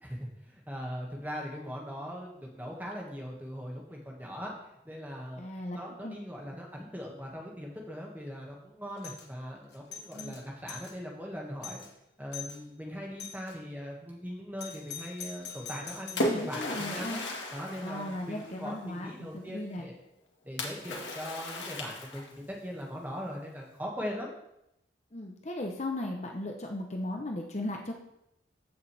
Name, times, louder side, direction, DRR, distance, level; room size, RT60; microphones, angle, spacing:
voice 1, 0.0-4.5 4.8-5.4 5.7-11.9 12.2-17.2 17.5-20.0 20.4-24.3, equal, 10° right, -2 dB, 1.8 m, -40 dB
voice 2, 5.4-6.1 10.1-10.3 16.2-17.2 17.8-19.9 25.1-28.0, left 1 dB, 35° left, 2 dB, 0.9 m, -37 dB
Doorbell, 9.0-9.3 9.7-11.0 11.3-11.4 11.6-11.9 12.3-12.6 13.2-13.6 14.6-16.3, left 7 dB, 65° left, 1.4 m, -43 dB
Splash splatter, 15.6-18.8 20.6-22.5, left 1 dB, 80° left, 2.0 m, -35 dB
15.0 x 6.5 x 3.4 m, 0.82 s
head